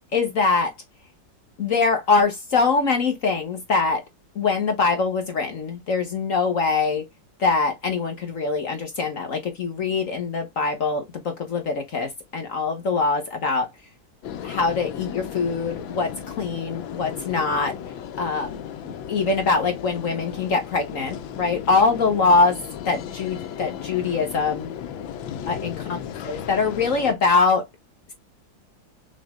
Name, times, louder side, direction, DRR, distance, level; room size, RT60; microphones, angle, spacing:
voice 1, 0.1-0.7 1.6-4.0 4.4-7.0 7.4-13.7 14.4-16.1 16.4-17.7 18.2-18.6 19.1-22.6 22.8-24.7 25.5-26.0 26.2-27.6, left 4 dB, 50° left, 1.2 m, -23 dB
sound 1, 14.2-27.1, left 9 dB, 90° left, 1.5 m, -35 dB
6.2 x 3.2 x 2.4 m
omnidirectional pair, 2.1 m